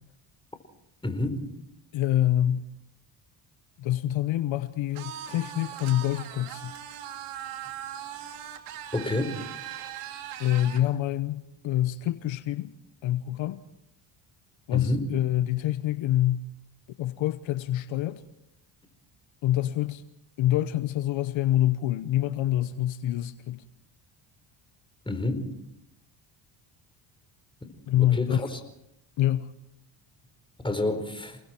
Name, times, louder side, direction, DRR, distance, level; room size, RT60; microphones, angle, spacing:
voice 1, 1.0-1.5 8.9-9.4 14.7-15.1 25.1-25.5 27.6-27.7 28.0-28.6 30.6-31.4, left 2 dB, 10° left, 4.4 m, -29 dB
voice 2, 1.9-2.7 3.8-6.7 10.4-12.7 13.0-13.6 14.7-16.4 17.0-18.2 19.4-20.0 20.4-23.6 27.9-28.5 29.2-29.5, left 13 dB, 65° left, 1.0 m, -26 dB
sound 1, 4.9-10.9, right 10 dB, 85° right, 2.6 m, -39 dB
29.0 x 20.0 x 4.5 m
supercardioid pair, 80°, 49 cm